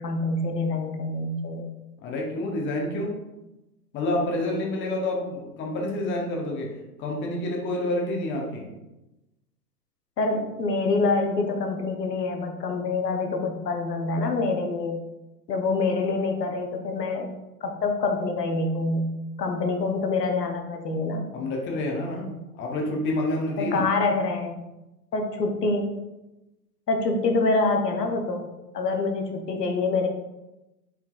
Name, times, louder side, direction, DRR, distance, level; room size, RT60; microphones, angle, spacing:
voice 1, 0.0-1.6 10.2-15.0 15.5-17.3 17.6-19.1 19.4-21.2 23.6-24.6 25.1-25.9 26.9-28.5 28.7-30.1, left 3 dB, 85° left, 3 dB, 0.8 m, -26 dB
voice 2, 2.0-3.1 3.9-6.7 7.0-8.7 21.3-23.9, left 1 dB, 25° left, 0 dB, 0.9 m, -28 dB
4.1 x 4.0 x 2.4 m, 0.99 s
hypercardioid pair, 105°, 48 cm